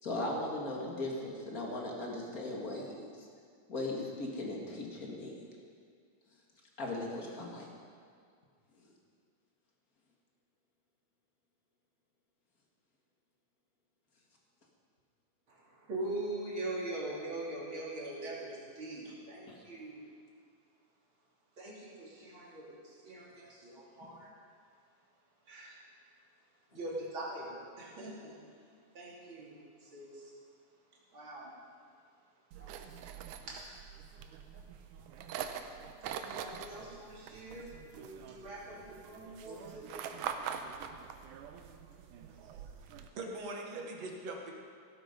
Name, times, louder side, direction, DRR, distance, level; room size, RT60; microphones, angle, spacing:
voice 1, 0.0-3.1 3.7-5.3 6.8-7.7 19.5-19.6 24.0-24.2, left 2 dB, 30° left, -1 dB, 2.0 m, -38 dB
voice 2, 15.9-20.0 21.6-22.8 23.0-24.3 25.5-25.7 26.7-28.4 29.0-29.6 29.9-30.1 31.1-31.5 32.6-32.8 33.5-33.7 36.2-37.7 37.9-40.2, right 2 dB, 40° right, -5 dB, 3.7 m, -42 dB
sound 1, 32.5-43.1, right 8 dB, 80° right, 2.2 m, -44 dB
voice 3, 42.3-44.5, right 2 dB, 55° right, 1 dB, 2.5 m, -43 dB
17.5 x 12.0 x 5.3 m, 2.2 s
omnidirectional pair, 3.8 m